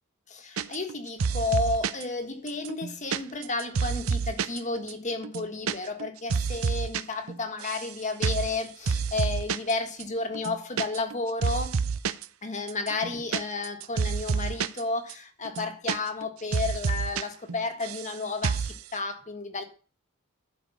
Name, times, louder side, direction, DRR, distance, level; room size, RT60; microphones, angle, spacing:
voice 1, 0.3-11.8 12.4-19.6, left 3 dB, 35° left, 1.6 m, -32 dB
sound 1, 0.6-0.9 1.2-2.0 2.5-4.6 4.9-5.0 5.2-5.7 6.0-7.0 7.3-7.9 8.2-8.5 8.9-9.7 10.0-10.1 10.3-11.2 11.4-12.2 12.7-14.8 15.1-15.2 15.4-16.3 16.5-17.2 17.5-18.1 18.4-18.8, right 5 dB, 75° right, 0.6 m, -28 dB
12.5 x 5.1 x 7.1 m
head